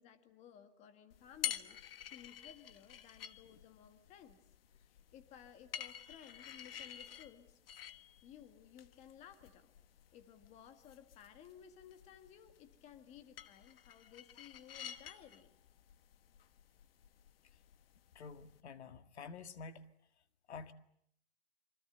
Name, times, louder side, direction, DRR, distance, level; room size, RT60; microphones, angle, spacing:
voice 1, 0.0-4.4 4.7-7.6 8.2-9.7 10.1-15.5, left 9 dB, 20° left, 1.8 m, -58 dB
sound 1, 1.1-18.6, left 10 dB, 60° left, 1.5 m, -50 dB
voice 2, 18.2-19.9 20.5-20.7, left 5 dB, 75° left, 2.0 m, -49 dB
27.0 x 24.5 x 8.0 m
hypercardioid pair, 160°, 33 cm